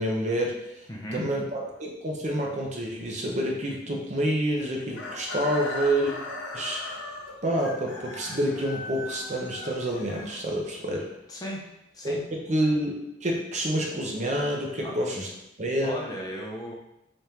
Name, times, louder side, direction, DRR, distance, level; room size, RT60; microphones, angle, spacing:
voice 1, 0.0-0.8 1.1-6.1 6.5-7.2 7.4-11.1 12.0-12.2 12.5-12.9 13.2-15.3 15.6-15.9, right 1 dB, 35° right, 0 dB, 0.6 m, -28 dB
voice 2, 0.9-1.3 11.3-11.6 11.9-12.2 14.8-15.0 15.8-16.7, equal, 20° left, -2 dB, 0.6 m, -36 dB
Chicken rooster, 4.9-10.9, left 2 dB, 90° left, 0.7 m, -38 dB
3.4 x 2.5 x 4.3 m, 0.85 s
head